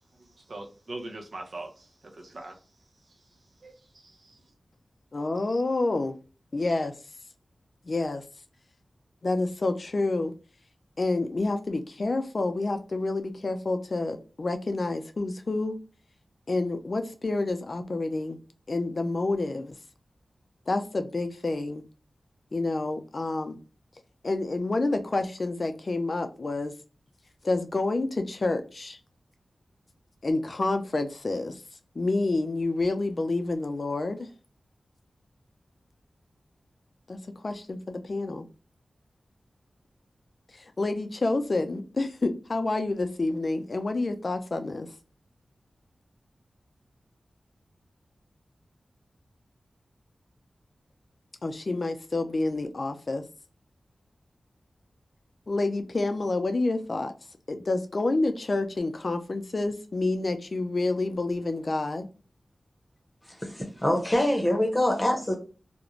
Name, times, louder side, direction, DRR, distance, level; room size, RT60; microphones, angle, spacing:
voice 1, 0.2-2.6 3.6-4.4, right 2 dB, 65° right, 3 dB, 0.7 m, -42 dB
voice 2, 5.1-6.2 6.5-6.9 7.8-8.2 9.2-10.3 11.0-15.8 16.5-18.4 18.7-19.8 20.7-21.8 22.5-23.6 24.2-26.7 27.4-29.0 30.2-31.6 31.9-34.3 37.1-38.5 40.5-44.9 51.4-53.2 55.5-57.1 57.5-62.1, left 2 dB, 55° left, 7 dB, 0.4 m, -28 dB
voice 3, 63.4-65.4, left 1 dB, 25° left, 2 dB, 0.8 m, -24 dB
2.4 x 2.1 x 3.0 m, 0.35 s
cardioid pair, 55°, 0 cm